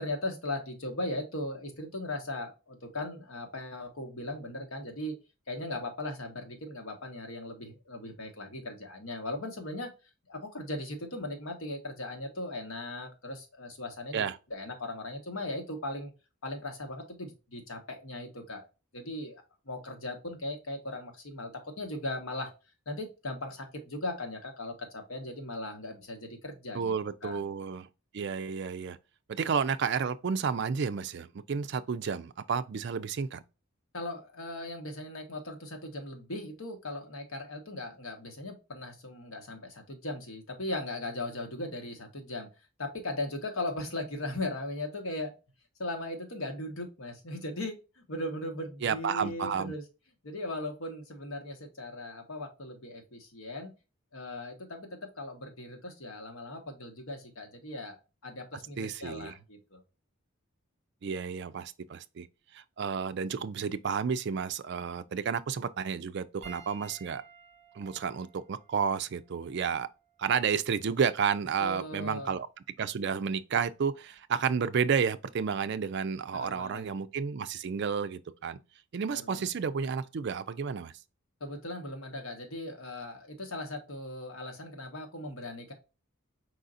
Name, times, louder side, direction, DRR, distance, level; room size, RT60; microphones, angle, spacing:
voice 1, 0.0-5.1 5.5-9.9 10.3-16.1 16.4-18.7 18.9-21.5 21.8-22.5 22.9-26.9 27.2-27.4 33.9-42.5 42.8-45.3 45.8-49.8 50.2-53.7 54.1-58.0 58.2-59.8 71.6-72.4 76.3-76.8 79.1-79.5 81.4-85.7, left 1 dB, 80° left, 1.3 m, -38 dB
voice 2, 26.7-27.9 28.1-29.0 29.3-33.4 48.8-49.7 58.8-59.3 61.0-62.3 62.5-67.2 67.8-69.9 70.2-72.5 72.8-78.6 78.9-80.9, right 6 dB, 55° right, 0.4 m, -31 dB
Piano, 66.4-71.1 72.0-72.2 74.2-74.3, right 5 dB, 35° right, 2.2 m, -55 dB
4.8 x 3.9 x 2.5 m
head